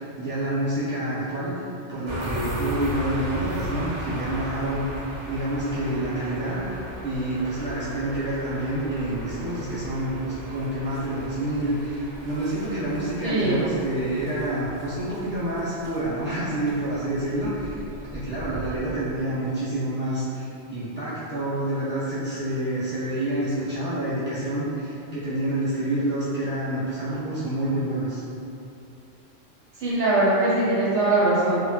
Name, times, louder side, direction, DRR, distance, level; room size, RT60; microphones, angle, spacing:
voice 1, 0.0-1.5 1.9-5.0 5.3-6.6 7.0-17.8 18.1-28.2, right 1 dB, 10° right, -13 dB, 0.8 m, -28 dB
sound 1, 2.1-19.3, equal, 35° right, 0.5 m, -37 dB
voice 2, 13.2-13.6 29.8-31.6, right 2 dB, 70° right, -8 dB, 0.8 m, -21 dB
2.1 x 2.1 x 3.1 m, 2.6 s
omnidirectional pair, 1.3 m